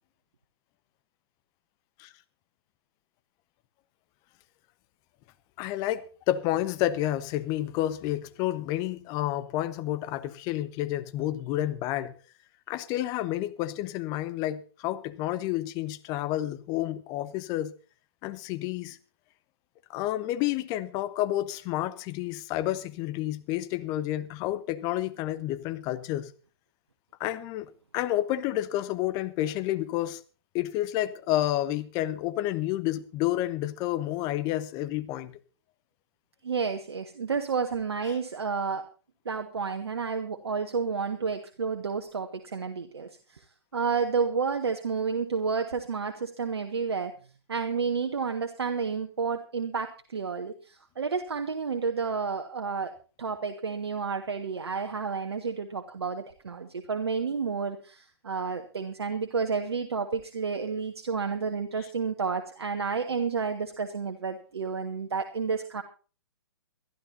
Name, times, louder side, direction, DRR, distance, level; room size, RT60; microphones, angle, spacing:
voice 1, 5.6-12.1 12.7-17.7 18.2-19.0 19.9-26.3 27.2-30.2 30.5-35.3, left 14 dB, 25° left, 1.1 m, -30 dB
voice 2, 36.4-38.8 39.3-43.4 43.7-47.2 47.5-52.9 53.2-65.8, right 5 dB, 65° right, 1.7 m, -30 dB
23.5 x 12.5 x 2.7 m
figure-of-eight pair, 125°, 14 cm